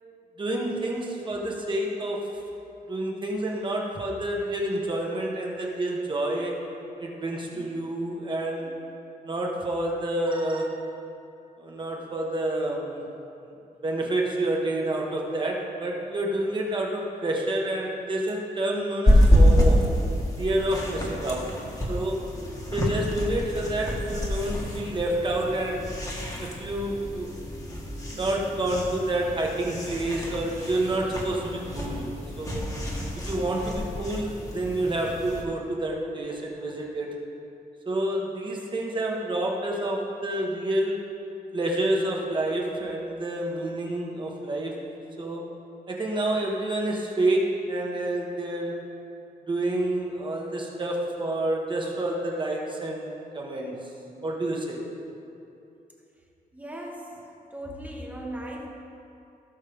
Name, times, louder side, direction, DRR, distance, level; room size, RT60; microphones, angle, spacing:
voice 1, 0.4-2.2 2.9-6.5 7.0-8.7 9.2-10.7 11.6-13.0 13.4-13.5 13.8-19.8 20.4-21.5 21.9-22.2 22.7-25.8 26.4-27.3 28.1-32.1 32.4-32.6 33.3-37.1 37.8-41.0 41.5-44.7 45.2-45.4 45.9-48.7 49.5-53.9 54.2-54.8, right 1 dB, 30° right, -1 dB, 1.5 m, -28 dB
sound 1, 19.1-35.4, equal, 25° left, 1.6 m, -27 dB
voice 2, 56.5-57.1 57.5-58.7, right 1 dB, 10° right, -1 dB, 1.3 m, -38 dB
17.0 x 6.4 x 3.7 m, 2.7 s
wide cardioid pair, 155°, 15 cm